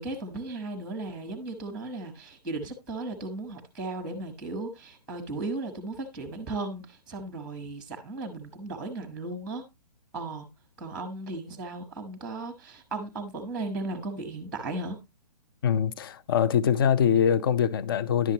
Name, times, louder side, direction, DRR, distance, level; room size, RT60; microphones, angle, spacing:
voice 1, 0.0-9.6 10.1-10.5 10.8-15.0, right 2 dB, ahead, 1.1 m, -36 dB
voice 2, 15.6-18.3, left 8 dB, 35° left, 0.5 m, -23 dB
11.0 x 7.3 x 2.8 m
hypercardioid pair, 165°, 21 cm